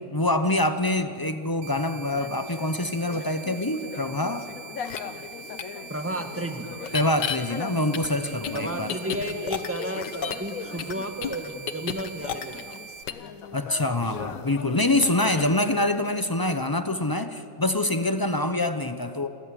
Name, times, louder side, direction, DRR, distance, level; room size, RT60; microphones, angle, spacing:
voice 1, 0.1-4.5 6.9-8.9 13.5-19.3, left 1 dB, 35° left, 8 dB, 0.3 m, -25 dB
sound 1, 1.6-13.0, right 5 dB, 85° right, 1.7 m, -43 dB
sound 2, 2.0-11.1 11.5-15.5, left 7 dB, 55° left, 1.3 m, -40 dB
sound 3, 4.9-5.0 5.6-5.7 6.8-7.4 7.9-10.5 10.8-12.8 13.1-13.3, left 9 dB, 70° left, 1.6 m, -32 dB
voice 2, 5.9-6.7 8.5-12.8, right 1 dB, 10° right, 6 dB, 1.4 m, -33 dB
27.0 x 14.5 x 9.8 m, 2.7 s
omnidirectional pair, 1.9 m